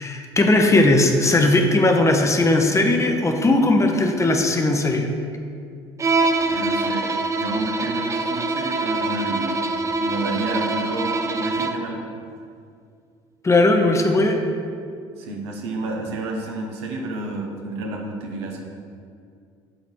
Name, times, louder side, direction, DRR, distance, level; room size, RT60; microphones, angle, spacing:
voice 1, 0.0-5.1 13.4-14.4, left 2 dB, 20° left, 4 dB, 0.9 m, -18 dB
Bowed string instrument, 6.0-11.9, right 3 dB, 20° right, 0.6 m, -24 dB
voice 2, 6.5-9.5 10.0-12.0 15.2-18.6, right 2 dB, 75° right, 1 dB, 1.0 m, -30 dB
7.8 x 4.0 x 6.2 m, 2.3 s
figure-of-eight pair, 60°, 14 cm